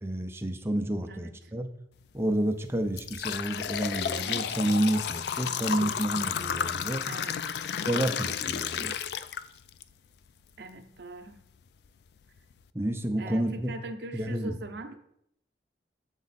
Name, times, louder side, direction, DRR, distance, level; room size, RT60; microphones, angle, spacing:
voice 1, 0.0-1.7 2.1-7.0 7.9-8.9 12.7-13.7 14.1-14.6, right 1 dB, 15° right, 6 dB, 0.5 m, -30 dB
sound 1, 2.0-2.2 2.7-9.8 10.3-10.4 11.2-11.3 11.9-12.0 12.4-12.6, left 8 dB, 65° left, 0.3 m, -32 dB
voice 2, 7.0-7.6 10.6-11.4 13.2-15.0, right 2 dB, 65° right, 5 dB, 0.6 m, -41 dB
7.2 x 4.2 x 4.0 m, 0.74 s
head